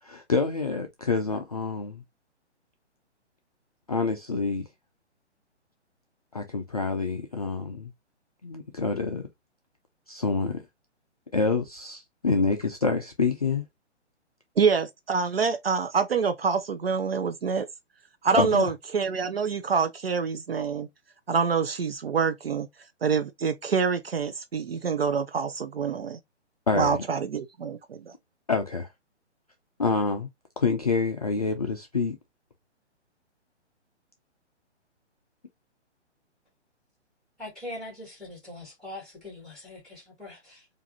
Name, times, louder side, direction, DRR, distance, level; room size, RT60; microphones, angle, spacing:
voice 1, 0.0-2.0 3.9-4.6 6.3-7.9 8.4-9.3 10.1-10.6 11.3-13.6 18.3-18.7 26.7-27.0 28.5-28.9 29.8-30.3 30.6-32.2, left 4 dB, 35° left, 0.4 m, -27 dB
voice 2, 14.6-17.7 18.2-20.9 21.3-22.7 23.0-26.2 26.7-28.0, right 5 dB, 55° right, 0.5 m, -26 dB
voice 3, 37.4-40.7, left 1 dB, ahead, 2.0 m, -42 dB
4.5 x 2.5 x 2.6 m
figure-of-eight pair, 130°, 35 cm